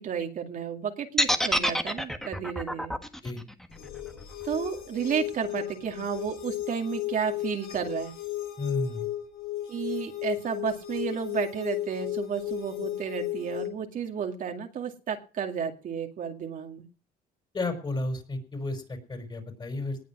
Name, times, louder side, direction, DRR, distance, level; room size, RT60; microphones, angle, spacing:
voice 1, 0.0-2.9 4.4-8.1 9.7-16.8, right 7 dB, 50° right, 3 dB, 2.2 m, -32 dB
sound 1, 1.2-5.2, equal, ahead, 1.5 m, -28 dB
sound 2, 3.7-13.7, left 14 dB, 90° left, 4.8 m, -35 dB
voice 2, 8.6-9.1 17.5-20.0, left 2 dB, 30° left, 6 dB, 5.0 m, -32 dB
19.0 x 7.3 x 6.0 m, 0.37 s
cardioid pair, 110°, 17 cm